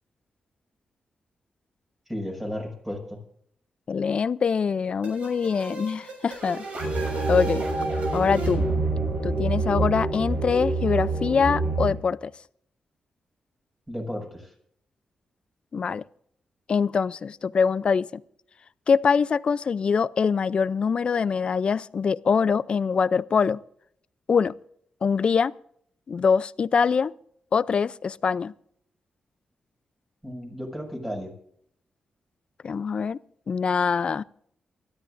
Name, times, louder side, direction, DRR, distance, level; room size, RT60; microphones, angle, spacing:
voice 1, 2.1-3.2 13.9-14.5 30.2-31.3, equal, 10° right, 5.9 m, -34 dB
voice 2, 3.9-6.6 7.3-7.6 8.1-8.7 9.2-12.3 15.7-16.0 16.7-18.2 18.9-23.6 24.3-24.5 25.0-25.5 26.1-27.1 27.5-28.5 32.6-33.2 33.5-34.2, left 6 dB, 50° left, 0.5 m, -24 dB
sound 1, 5.0-10.7, right 2 dB, 65° right, 6.7 m, -34 dB
sound 2, 6.8-11.9, right 3 dB, 85° right, 6.1 m, -27 dB
29.0 x 13.0 x 2.6 m
cardioid pair, 95°, 2 cm